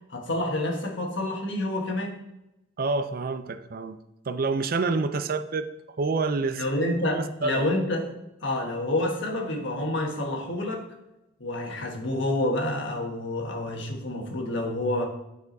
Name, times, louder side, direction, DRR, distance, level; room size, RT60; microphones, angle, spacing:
voice 1, 0.1-2.2 6.6-8.1 8.4-10.8 11.4-15.1, left 1 dB, 60° left, 1 dB, 1.4 m, -28 dB
voice 2, 2.8-4.0 4.3-5.7 6.0-6.6 7.1-7.7, right 3 dB, 45° right, 11 dB, 0.4 m, -27 dB
8.9 x 4.9 x 4.0 m, 0.89 s
head